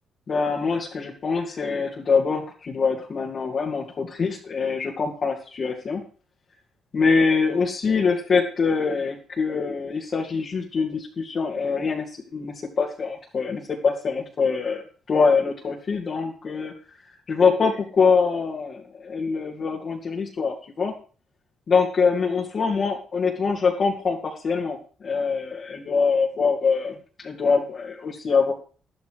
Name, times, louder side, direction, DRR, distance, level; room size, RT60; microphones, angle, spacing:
voice 1, 0.3-6.0 6.9-14.8 15.1-16.7 17.3-20.9 21.7-28.5, left 5 dB, 45° left, -2 dB, 2.6 m, -24 dB
12.0 x 12.0 x 4.9 m, 0.38 s
cardioid pair, 90°, 0 cm